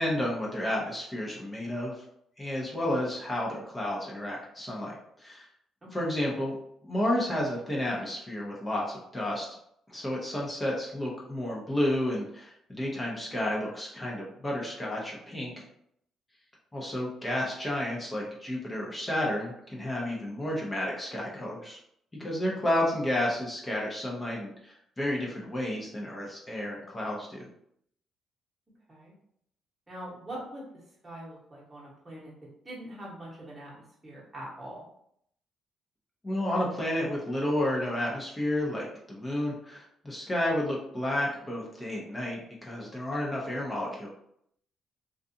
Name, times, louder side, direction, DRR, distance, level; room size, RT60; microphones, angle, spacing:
voice 1, 0.0-2.0 2.4-5.5 5.9-6.5 6.8-9.5 9.9-15.6 16.7-21.8 22.2-27.4 36.2-44.1, left 1 dB, 20° left, -3 dB, 0.7 m, -31 dB
voice 2, 29.9-34.8, right 1 dB, 20° right, -6 dB, 1.1 m, -43 dB
2.4 x 2.4 x 2.6 m, 0.72 s
cardioid pair, 90°, 0 cm